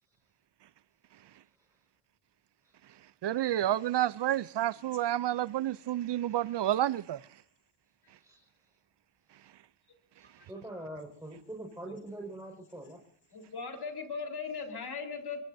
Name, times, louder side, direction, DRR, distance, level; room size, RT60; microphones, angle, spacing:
voice 1, 3.2-7.2, right 12 dB, 60° right, 0.6 m, -29 dB
voice 2, 10.3-13.0, right 1 dB, 5° right, 5.3 m, -44 dB
voice 3, 13.3-15.4, left 5 dB, 50° left, 4.2 m, -38 dB
23.5 x 22.5 x 2.7 m
cardioid pair, 75°, 48 cm